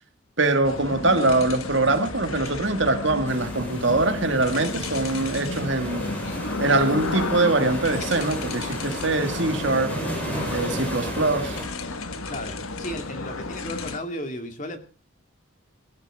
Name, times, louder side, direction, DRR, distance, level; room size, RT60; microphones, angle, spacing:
voice 1, 0.4-6.1 6.6-9.9 10.5-11.6, right 2 dB, 60° right, 2.0 m, -23 dB
sound 1, 0.6-14.0, left 3 dB, 80° left, 1.6 m, -32 dB
sound 2, 3.2-11.7, right 1 dB, 5° left, 5.0 m, -34 dB
voice 2, 12.3-14.8, left 1 dB, 35° left, 2.2 m, -34 dB
21.0 x 12.5 x 3.6 m
head